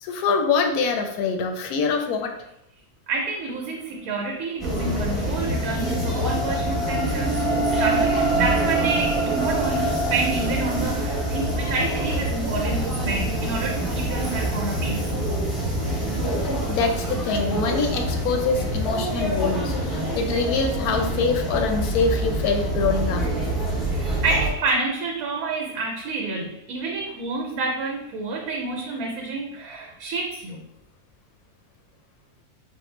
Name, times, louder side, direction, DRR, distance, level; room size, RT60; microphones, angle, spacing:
voice 1, 0.0-2.3 16.7-23.2, left 4 dB, 90° left, 4 dB, 1.1 m, -24 dB
voice 2, 3.1-15.1 23.9-30.6, right 3 dB, 85° right, 1 dB, 1.1 m, -29 dB
sound 1, 4.6-24.5, right 1 dB, ahead, 0.6 m, -26 dB
sound 2, 4.8-17.2 17.7-17.8, equal, 50° left, 0.6 m, -30 dB
Bowed string instrument, 7.0-11.7, right 9 dB, 65° right, 0.8 m, -31 dB
4.3 x 2.0 x 3.1 m, 0.82 s
omnidirectional pair, 1.5 m